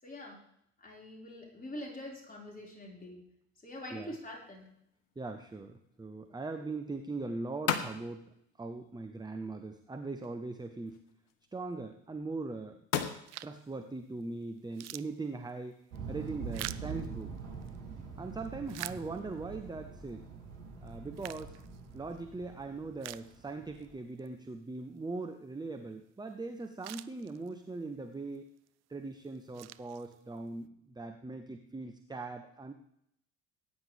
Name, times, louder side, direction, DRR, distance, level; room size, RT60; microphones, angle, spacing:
voice 1, 0.0-0.4 0.8-3.2 3.6-4.7, left 1 dB, 20° left, -2 dB, 5.2 m, -44 dB
sound 1, 3.7-16.5, left 8 dB, 70° left, 1.2 m, -43 dB
voice 2, 5.2-8.3 8.6-11.0 11.5-12.8 13.4-15.8 16.1-17.3 18.2-20.3 20.8-21.6 21.9-28.4 28.9-32.7, right 3 dB, 10° right, 6 dB, 1.0 m, -40 dB
sound 2, 13.3-13.7 14.2-14.3 14.6-17.8 18.3-19.5 20.1-20.2 20.9-22.2 22.6-22.7 23.0-23.9 24.2-24.3 26.3-26.4 26.6-27.7 28.4-28.7 29.2-30.5, right 15 dB, 40° right, 0.6 m, -46 dB
sound 3, 15.9-23.9, right 5 dB, 75° right, 3.6 m, -44 dB
19.0 x 9.4 x 3.5 m, 0.73 s
figure-of-eight pair, 55°, 39 cm